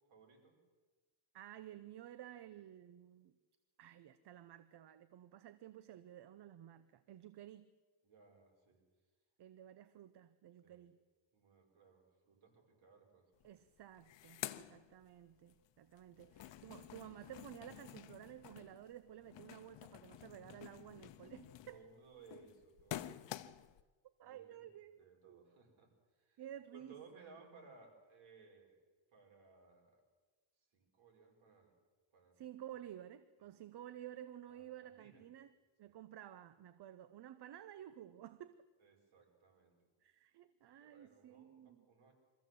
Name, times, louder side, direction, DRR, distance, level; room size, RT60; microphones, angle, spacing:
voice 1, 0.1-0.6 8.0-8.8 10.6-10.9 11.3-13.3 16.1-16.8 21.7-23.5 24.2-24.4 25.0-26.4 26.7-28.8 29.1-30.0 30.7-31.7 32.1-32.4 33.4-33.6 34.5-35.2 35.8-36.0 38.8-39.8 40.8-42.1, right 4 dB, 70° right, 1 dB, 5.5 m, -62 dB
voice 2, 1.3-3.4 3.8-7.7 9.4-11.0 13.4-21.8 24.0-25.4 26.4-27.0 32.4-35.5 35.8-38.6 40.0-41.9, right 11 dB, 55° right, 13 dB, 0.9 m, -53 dB
sound 1, 13.4-13.5 13.8-15.5 15.9-23.8, left 13 dB, 60° left, 0.9 m, -50 dB
24.0 x 14.5 x 7.7 m, 1.3 s
cardioid pair, 115°, 49 cm